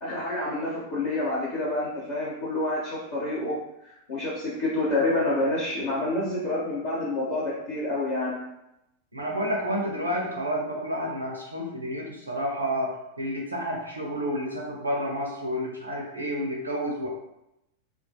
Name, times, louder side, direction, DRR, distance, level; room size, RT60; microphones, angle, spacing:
voice 1, 0.0-8.4, left 2 dB, 55° left, -9 dB, 0.8 m, -28 dB
voice 2, 9.1-17.1, equal, 80° right, -1 dB, 0.4 m, -30 dB
2.3 x 2.2 x 2.6 m, 0.85 s
figure-of-eight pair, 90°, 0 cm